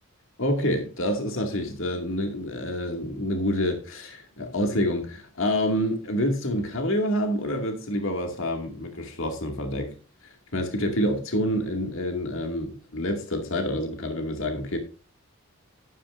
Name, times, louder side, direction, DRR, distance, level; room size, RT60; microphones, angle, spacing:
voice 1, 0.4-9.9 10.2-14.8, equal, 65° left, 2.2 m, -27 dB
12.0 x 11.5 x 2.6 m
head